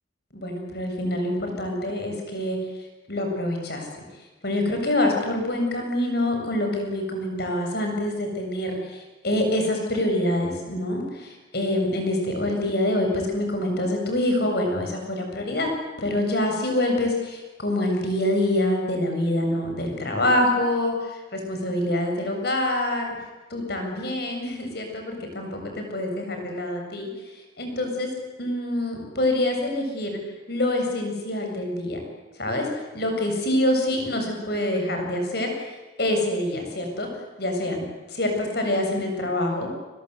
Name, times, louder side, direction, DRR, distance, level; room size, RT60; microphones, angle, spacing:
voice 1, 0.3-2.6 3.1-3.9 4.4-15.7 16.0-23.1 23.5-27.1 27.6-28.1 28.4-30.2 30.5-32.0 32.4-32.7 32.9-37.1 37.4-37.8 38.1-39.8, left 1 dB, 55° left, 3 dB, 7.4 m, -26 dB
29.5 x 22.5 x 8.2 m, 1.2 s
head